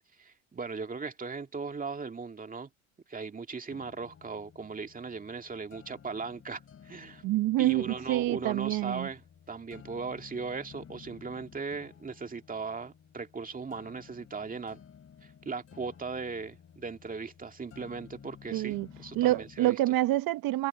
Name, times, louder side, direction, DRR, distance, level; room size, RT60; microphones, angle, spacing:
voice 1, 0.2-2.7 3.1-7.2 7.6-9.2 9.5-14.8 15.2-19.7, right 4 dB, 20° right, 2.2 m, -38 dB
sound 1, 3.7-19.7, left 7 dB, 40° left, 4.2 m, -54 dB
voice 2, 7.2-9.1 18.5-18.9 19.1-20.7, right 16 dB, 70° right, 1.8 m, -27 dB
supercardioid pair, 95°, 37 cm